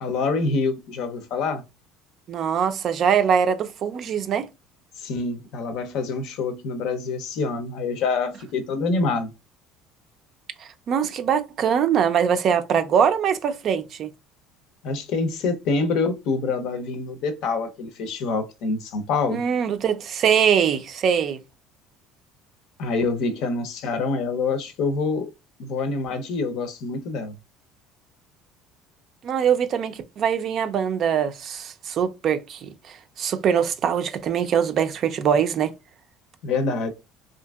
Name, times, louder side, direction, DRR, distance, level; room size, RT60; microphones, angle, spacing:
voice 1, 0.0-1.6 5.0-9.3 14.8-19.4 22.8-25.3 25.6-27.3 36.4-36.9, left 4 dB, 65° left, 0.6 m, -26 dB
voice 2, 2.3-4.5 10.6-14.1 19.3-21.4 29.2-35.7, right 8 dB, 50° right, 0.4 m, -23 dB
2.7 x 2.5 x 2.3 m
cardioid pair, 115°, 0 cm